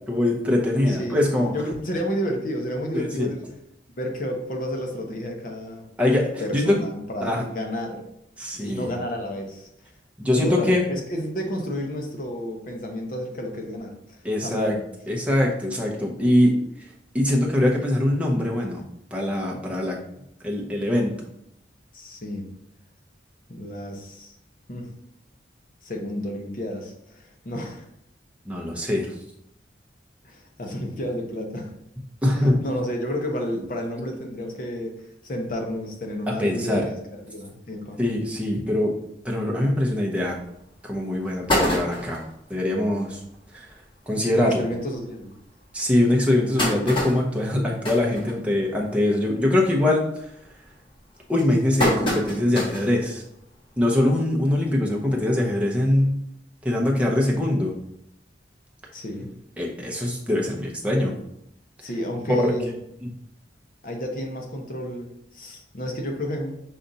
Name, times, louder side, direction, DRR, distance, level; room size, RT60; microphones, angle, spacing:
voice 1, 0.1-1.5 3.2-3.3 6.0-6.8 7.2-7.4 8.4-8.9 10.2-10.8 14.2-14.7 15.1-16.5 17.1-18.8 19.1-20.0 20.4-21.1 28.5-29.1 32.2-32.6 36.4-36.9 38.0-38.9 39.2-40.4 40.8-42.2 42.5-43.2 43.5-43.7 44.1-44.6 45.7-50.3 51.3-53.2 53.8-56.2 56.6-57.7 59.6-61.1 62.4-62.5 63.0-63.1, left 1 dB, 5° right, -2 dB, 0.7 m, -22 dB
voice 2, 0.9-3.4 4.0-5.9 6.4-8.0 8.5-9.7 10.3-14.8 21.9-22.5 23.5-24.3 24.7-24.9 25.8-27.9 30.2-31.7 32.3-36.9 37.3-38.0 44.3-45.3 58.9-59.3 61.8-62.8 63.8-66.5, equal, 50° left, 2 dB, 0.7 m, -31 dB
sound 1, 40.4-40.5 40.9-41.0 41.2-42.3 42.9-43.0 43.3-43.4 43.7-43.9 44.6-44.7 45.2-45.3 46.0-48.9 49.2-49.6 49.9-50.3 50.9-53.0 53.4-53.5 54.7-54.8, left 1 dB, 30° left, 1.3 m, -27 dB
5.4 x 2.4 x 3.9 m, 0.77 s
head